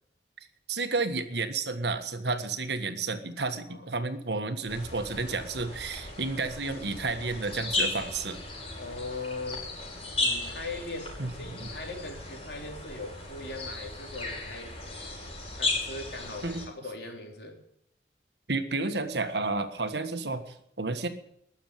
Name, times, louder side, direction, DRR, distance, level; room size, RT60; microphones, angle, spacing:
voice 1, 0.7-8.4 11.2-11.3 11.6-11.7 16.4-16.7 18.5-21.1, right 3 dB, 70° right, 9 dB, 1.5 m, -31 dB
sound 1, 4.7-16.7, left 2 dB, 30° left, 5.8 m, -35 dB
voice 2, 8.8-9.7 10.2-14.8 15.6-17.6, left 2 dB, 60° left, 1 dB, 4.0 m, -40 dB
20.0 x 7.3 x 9.2 m, 0.71 s
head